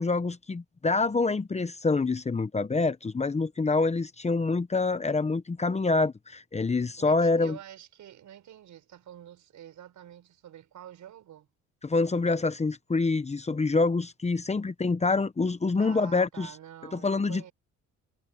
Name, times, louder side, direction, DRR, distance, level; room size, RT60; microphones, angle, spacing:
voice 1, 0.0-7.6 11.8-16.5 16.9-17.5, left 3 dB, 20° left, 1.0 m, -26 dB
voice 2, 7.0-11.5 15.8-17.5, right 11 dB, 75° right, 6.8 m, -47 dB
cardioid pair, 90°, 30 cm